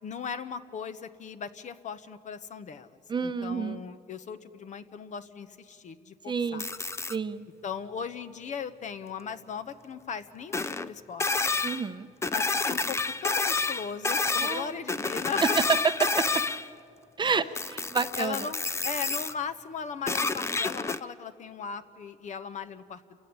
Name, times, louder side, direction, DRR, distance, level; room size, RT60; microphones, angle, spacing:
voice 1, 0.0-6.6 7.6-11.3 12.3-15.4 17.3-17.4 18.2-23.2, left 6 dB, 45° left, 11 dB, 1.1 m, -38 dB
voice 2, 3.1-3.8 6.3-6.7 7.1-7.4 11.6-12.1 14.4-14.8 15.4-16.2 17.2-18.4, right 5 dB, 25° right, 11 dB, 0.9 m, -28 dB
sound 1, 6.6-7.1 10.5-10.9 11.2-11.9 12.2-16.7 17.5-19.3 20.1-21.0, left 3 dB, 15° left, 0.6 m, -29 dB
29.0 x 15.0 x 9.7 m, 2.5 s
cardioid pair, 110°, 17 cm